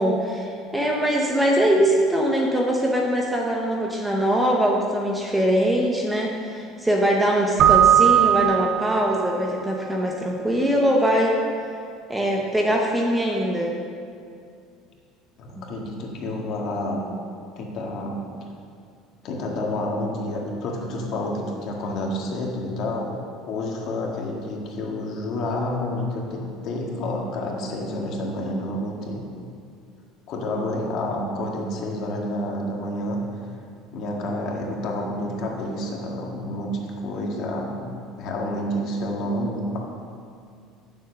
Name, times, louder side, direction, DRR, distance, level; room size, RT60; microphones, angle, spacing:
voice 1, 0.0-11.4 12.1-13.7 15.6-15.7, equal, 5° right, -1 dB, 0.7 m, -22 dB
Keyboard (musical), 7.6-9.4, right 10 dB, 35° right, 0.5 m, -18 dB
voice 2, 15.4-17.0 17.6-18.2 19.2-23.1 23.5-29.2 30.3-33.2 33.9-37.9 38.2-39.8, left 1 dB, 40° left, -1 dB, 1.7 m, -29 dB
9.1 x 7.3 x 6.7 m, 2.3 s
cardioid pair, 175°, 0 cm